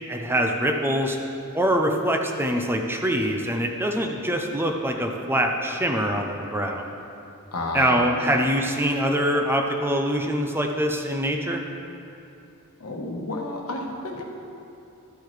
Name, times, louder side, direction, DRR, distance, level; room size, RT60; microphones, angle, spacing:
voice 1, 0.1-1.2 1.5-6.9 7.7-11.6, equal, 10° right, 3 dB, 0.5 m, -24 dB
voice 2, 7.5-8.4 12.8-14.2, left 2 dB, 85° left, 0 dB, 1.2 m, -31 dB
12.5 x 8.2 x 3.3 m, 2.8 s
head